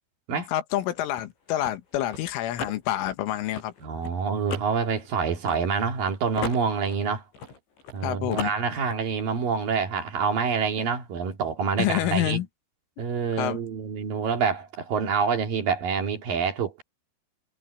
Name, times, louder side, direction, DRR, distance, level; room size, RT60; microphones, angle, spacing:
voice 1, 0.5-3.7 8.0-8.5 11.8-12.5 13.4-13.6, left 13 dB, 90° left, 3.9 m, -27 dB
sound 1, 0.7-6.0 6.4-8.0 8.3-9.0, left 4 dB, 70° left, 9.7 m, -37 dB
voice 2, 3.8-7.2 7.9-12.4 13.0-16.8, right 6 dB, 55° right, 3.5 m, -27 dB
omnidirectional pair, 5.5 m